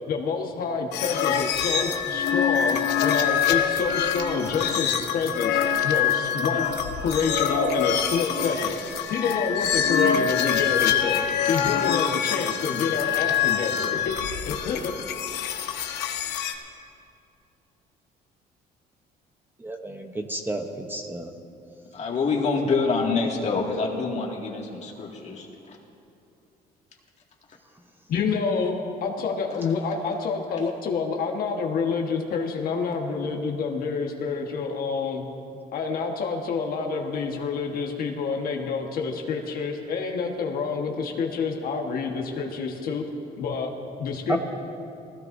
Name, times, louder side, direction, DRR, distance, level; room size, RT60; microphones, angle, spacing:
voice 1, 0.1-6.7 7.0-8.8 9.1-11.2 11.5-14.1 14.5-14.9 28.1-28.7 29.0-35.2 35.7-43.0 43.4-43.7 44.0-44.4, left 5 dB, 60° left, 2 dB, 1.4 m, -28 dB
sound 1, 0.9-16.5, left 8 dB, 85° left, 0.9 m, -25 dB
voice 2, 19.6-21.3 44.3-44.4, right 1 dB, 10° right, 4 dB, 0.9 m, -31 dB
voice 3, 21.9-25.8 29.5-29.7, left 4 dB, 40° left, 0 dB, 2.1 m, -26 dB
19.5 x 16.0 x 2.7 m, 2.6 s
cardioid pair, 110°, 17 cm